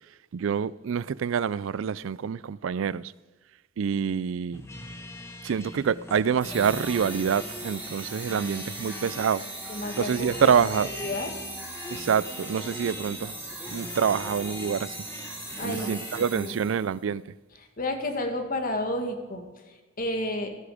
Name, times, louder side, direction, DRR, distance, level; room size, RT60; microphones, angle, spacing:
voice 1, 0.3-3.1 3.8-4.6 5.4-9.4 10.0-10.9 11.9-13.3 13.7-15.0 15.6-17.2, right 7 dB, 70° right, 0.4 m, -26 dB
sound 1, 4.5-16.3, left 1 dB, 15° left, 1.5 m, -41 dB
sound 2, 6.4-16.9, right 1 dB, 10° right, 3.1 m, -39 dB
voice 2, 9.7-10.5 10.8-11.3 15.6-15.9 16.3-16.6 17.6-20.5, left 1 dB, 45° left, 2.0 m, -31 dB
16.0 x 13.5 x 5.0 m
head